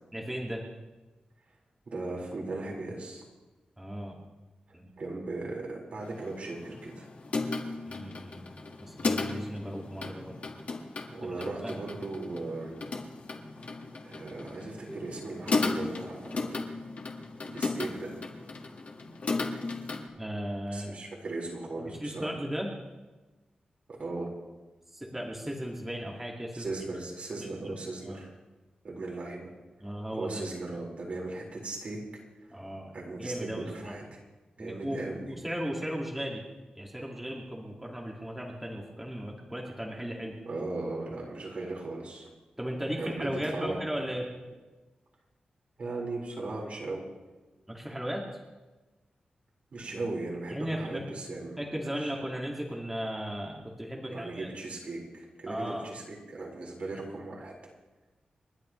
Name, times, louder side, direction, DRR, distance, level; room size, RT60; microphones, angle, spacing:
voice 1, 0.1-0.6 3.8-4.3 4.7-4.9 7.9-10.4 11.6-11.8 14.9-15.0 20.2-21.0 21.8-22.7 24.9-26.7 27.4-27.7 28.0-28.2 29.8-30.4 32.5-34.0 34.6-35.0 35.3-36.4 36.8-40.3 42.6-44.3 47.7-48.2 50.5-51.0 51.6-54.5 55.5-55.9, equal, 10° right, -2 dB, 2.0 m, -36 dB
voice 2, 1.9-3.2 5.0-7.1 11.1-12.8 14.0-16.6 17.4-18.1 20.7-22.3 24.0-24.3 26.5-28.3 28.8-29.5 30.1-32.0 32.5-32.6 32.9-34.2 34.6-35.3 40.4-42.3 43.0-43.8 44.0-44.2 45.8-47.0 49.7-51.6 52.0-52.1 54.1-57.5, right 2 dB, 55° right, -2 dB, 4.6 m, -37 dB
sound 1, 6.0-20.1, left 3 dB, 55° left, 1.7 m, -35 dB
30.0 x 12.0 x 3.2 m, 1.2 s
wide cardioid pair, 135°, 3 cm